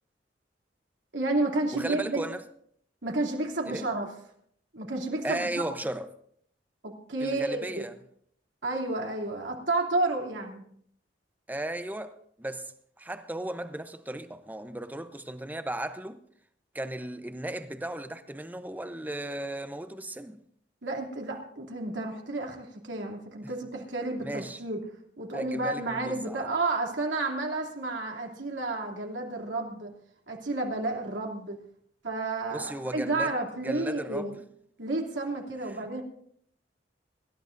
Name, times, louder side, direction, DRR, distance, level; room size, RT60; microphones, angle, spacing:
voice 1, 1.1-2.2 3.0-4.1 4.7-5.5 6.8-7.9 8.6-10.7 20.8-24.8 25.2-29.9 30.3-31.6 32.0-34.4 34.8-36.0, right 2 dB, 85° right, 2.9 m, -31 dB
voice 2, 1.7-2.4 3.7-3.9 5.2-6.1 7.2-7.9 11.5-16.2 16.7-20.4 24.2-24.6 25.3-26.5 32.5-33.3 33.6-34.4 35.7-35.8, right 1 dB, 10° right, 0.7 m, -36 dB
25.5 x 13.0 x 2.6 m
head